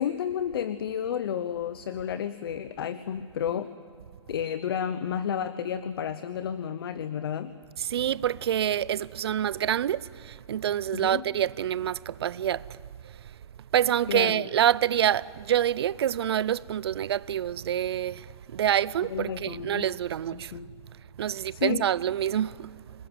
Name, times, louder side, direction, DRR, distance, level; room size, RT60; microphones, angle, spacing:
voice 1, 0.0-3.7 4.3-7.5 10.9-11.2 14.1-14.5 19.1-19.9 20.3-20.7 21.5-21.8, left 8 dB, 50° left, 0.9 m, -31 dB
voice 2, 7.8-13.2 13.7-20.6 21.2-22.7, right 10 dB, 55° right, 0.5 m, -27 dB
27.0 x 20.5 x 9.3 m
hypercardioid pair, 160°, 16 cm